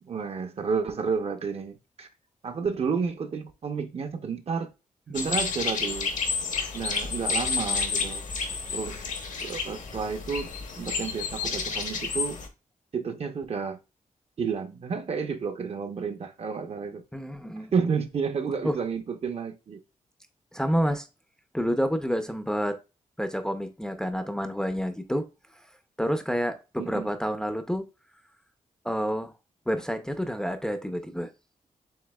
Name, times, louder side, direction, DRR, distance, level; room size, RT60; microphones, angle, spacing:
voice 1, 0.0-2.1 2.4-4.7 5.1-6.1 6.7-8.2 8.7-9.0 9.4-10.5 10.8-12.4 12.9-13.8 14.4-17.0 17.7-19.8 26.8-27.1, right 5 dB, 45° right, 0.6 m, -31 dB
sound 1, 5.1-12.5, left 5 dB, 65° left, 0.9 m, -30 dB
voice 2, 17.1-17.7 18.6-18.7 20.5-21.1 21.5-22.8 23.2-25.2 26.0-27.8 28.8-29.3 29.7-31.3, equal, 5° left, 0.5 m, -28 dB
7.4 x 2.8 x 2.2 m
wide cardioid pair, 120°, 14 cm